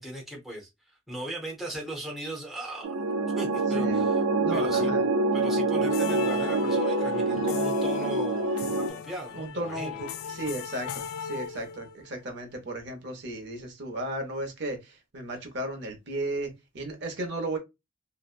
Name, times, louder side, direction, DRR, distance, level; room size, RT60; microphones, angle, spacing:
voice 1, 0.0-3.0 3.4-4.2 4.5-4.9 5.3-10.0, right 1 dB, ahead, 0.7 m, -38 dB
sound 1, 2.8-8.9, right 3 dB, 90° right, 0.4 m, -26 dB
voice 2, 4.4-5.0 9.3-17.6, right 1 dB, 60° right, 0.7 m, -35 dB
sound 2, 5.8-12.1, left 9 dB, 90° left, 0.3 m, -36 dB
2.7 x 2.1 x 2.4 m
head